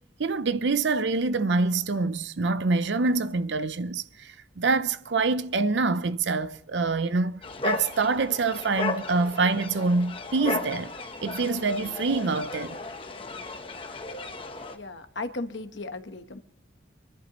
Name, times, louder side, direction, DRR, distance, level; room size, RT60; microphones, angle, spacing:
voice 1, 0.2-10.9 11.2-12.8, right 3 dB, 70° right, 0.6 m, -26 dB
sound 1, 7.4-14.8, left 3 dB, 30° left, 0.9 m, -35 dB
voice 2, 14.7-16.4, left 2 dB, 70° left, 1.1 m, -36 dB
25.5 x 11.5 x 3.0 m
head